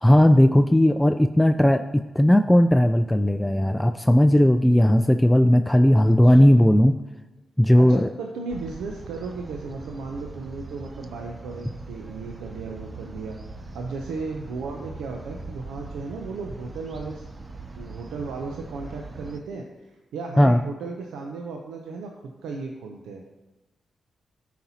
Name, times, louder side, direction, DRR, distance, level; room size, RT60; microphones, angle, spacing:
voice 1, 0.0-7.0 7.6-8.1 20.4-20.6, left 1 dB, 10° left, 8 dB, 0.3 m, -17 dB
voice 2, 6.0-6.5 7.8-17.2 17.8-23.4, right 4 dB, 85° right, 2 dB, 0.5 m, -35 dB
sound 1, 8.5-19.4, right 2 dB, 40° right, 0.6 m, -41 dB
12.0 x 4.2 x 2.8 m, 1.1 s
supercardioid pair, 40°, 0 cm